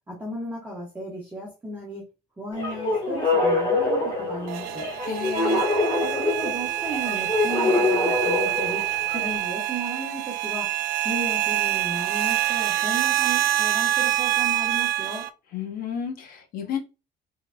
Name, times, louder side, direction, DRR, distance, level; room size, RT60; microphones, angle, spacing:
voice 1, 0.1-2.0 2.4-4.9 6.0-10.7 11.0-15.3, right 1 dB, 10° right, 1.2 m, -35 dB
sound 1, 2.5-9.4, left 2 dB, 25° left, 1.5 m, -25 dB
sound 2, 4.5-15.3, right 13 dB, 65° right, 0.4 m, -26 dB
voice 2, 5.0-5.6 15.5-16.8, left 8 dB, 55° left, 1.0 m, -32 dB
3.8 x 3.8 x 2.3 m
cardioid pair, 175°, 18 cm